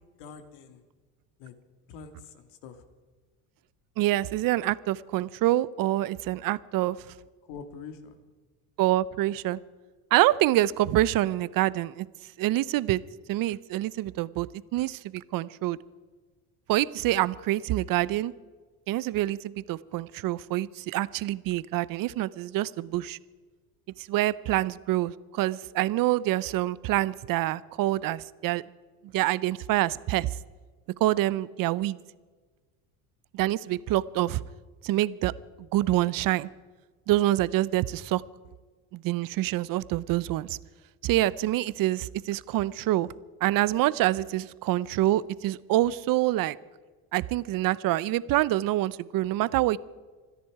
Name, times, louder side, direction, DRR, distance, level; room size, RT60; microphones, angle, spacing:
voice 1, 0.2-0.8 1.4-1.5 1.9-2.8 7.4-8.2, left 5 dB, 80° left, 8 dB, 2.2 m, -45 dB
voice 2, 4.0-7.0 8.8-9.6 10.1-12.1 12.4-13.0 13.3-14.5 14.7-15.8 16.7-18.3 18.9-23.2 24.0-28.6 29.1-30.3 31.0-32.0 33.3-34.4 34.8-35.3 35.6-36.5 37.1-38.2 38.9-40.6 41.0-43.1 43.4-46.6 47.1-49.8, right 15 dB, 55° right, 19 dB, 0.7 m, -26 dB
27.0 x 10.5 x 4.7 m, 1.4 s
cardioid pair, 115°, 41 cm